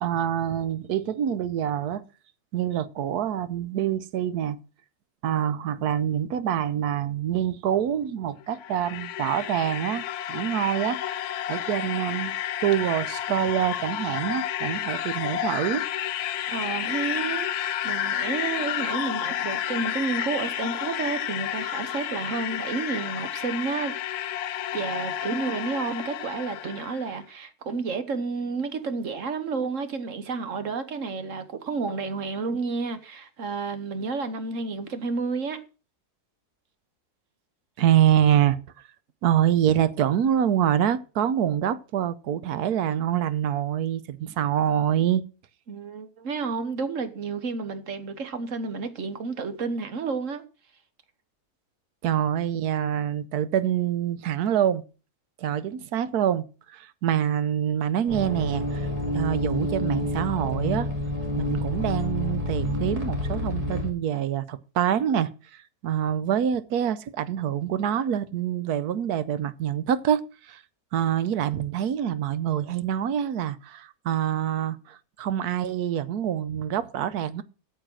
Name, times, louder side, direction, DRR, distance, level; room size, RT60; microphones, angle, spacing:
voice 1, 0.0-2.0 2.5-4.6 5.2-11.0 11.5-12.3 12.6-15.9 37.8-38.6 39.2-45.2 52.0-54.8 55.4-58.9 59.1-60.9 61.4-70.6 70.9-77.4, right 10 dB, 90° right, 1.3 m, -26 dB
sound 1, 8.4-27.1, left 11 dB, 85° left, 1.2 m, -31 dB
voice 2, 16.5-23.9 24.7-35.6 45.7-50.4, right 4 dB, 55° right, 1.5 m, -31 dB
sound 2, 58.1-63.9, left 1 dB, 25° right, 2.8 m, -28 dB
9.0 x 7.3 x 6.1 m
omnidirectional pair, 1.6 m